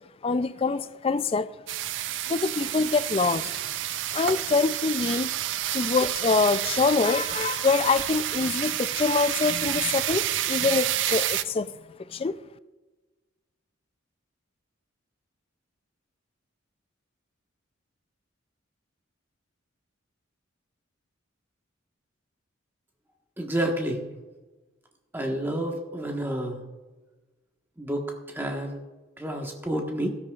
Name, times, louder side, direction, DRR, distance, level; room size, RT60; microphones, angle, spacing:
voice 1, 0.2-1.5 2.3-3.5 4.1-5.3 5.7-11.7 12.1-12.4, left 4 dB, 30° left, 0.3 m, -25 dB
sound 1, 1.7-11.4, right 12 dB, 65° right, 0.4 m, -29 dB
voice 2, 23.4-24.0 25.1-26.6 27.8-28.8 29.2-30.1, right 1 dB, 10° right, 1.3 m, -29 dB
16.5 x 13.0 x 2.4 m
head